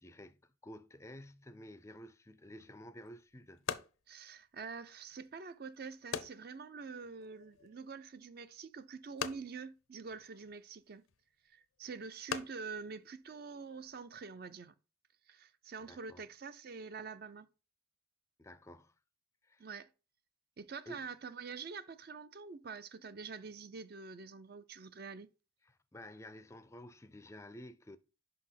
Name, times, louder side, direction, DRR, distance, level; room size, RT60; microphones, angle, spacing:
voice 1, 0.0-3.7 15.8-16.2 18.4-18.9 19.4-19.7 20.9-21.0 25.6-28.0, left 1 dB, 15° left, 0.4 m, -52 dB
sound 1, 2.6-14.0, left 7 dB, 85° left, 0.5 m, -47 dB
voice 2, 4.1-11.0 11.4-14.7 15.3-17.5 19.6-19.9 20.6-25.3, right 5 dB, 50° right, 0.4 m, -46 dB
5.5 x 4.2 x 5.7 m
head